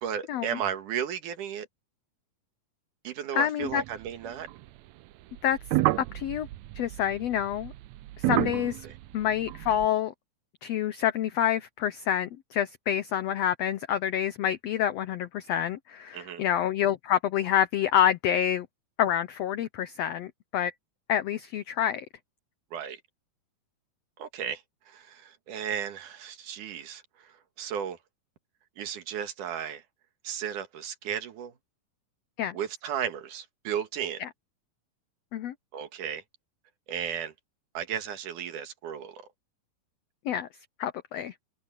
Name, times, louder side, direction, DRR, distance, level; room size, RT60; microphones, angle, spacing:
voice 1, 0.0-1.7 3.0-4.5 8.8-8.9 16.1-16.4 22.7-23.0 24.2-28.0 28.8-29.8 30.2-31.5 32.5-34.2 35.7-36.2 36.9-37.3 37.7-39.2, right 8 dB, 70° right, 3.0 m, -34 dB
voice 2, 3.3-3.8 5.4-5.6 6.0-6.5 6.7-7.7 8.2-8.9 9.1-10.1 10.6-18.7 19.0-20.7 21.1-22.0 32.4-32.6 34.2-34.3 35.3-35.5 40.2-40.5 40.8-41.3, left 10 dB, 85° left, 1.4 m, -27 dB
sound 1, 3.6-4.7 5.3-9.9, right 17 dB, 90° right, 1.6 m, -31 dB
omnidirectional pair, 3.8 m